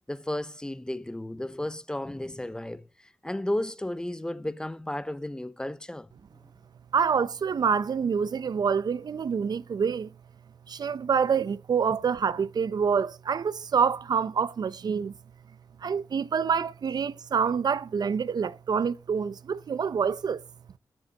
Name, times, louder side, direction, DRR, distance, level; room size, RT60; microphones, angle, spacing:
voice 1, 0.1-6.1, left 1 dB, 10° left, 0.5 m, -33 dB
voice 2, 6.9-10.1 10.7-15.1 15.8-20.4, right 6 dB, 60° right, 0.5 m, -26 dB
13.0 x 7.7 x 3.9 m
wide cardioid pair, 155°, 8 cm